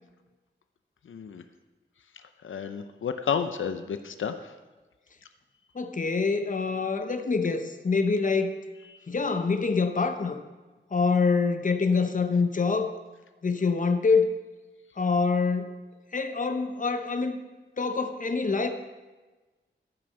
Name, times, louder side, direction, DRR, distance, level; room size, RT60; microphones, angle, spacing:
voice 1, 1.1-1.4 2.4-4.3, left 7 dB, 90° left, 8 dB, 0.6 m, -31 dB
voice 2, 5.7-8.6 9.1-10.4 10.9-12.9 13.4-14.3 15.0-15.8 16.1-17.4 17.8-18.7, left 4 dB, 40° left, 8 dB, 0.9 m, -25 dB
14.0 x 6.2 x 5.8 m, 1.2 s
wide cardioid pair, 95°, 20 cm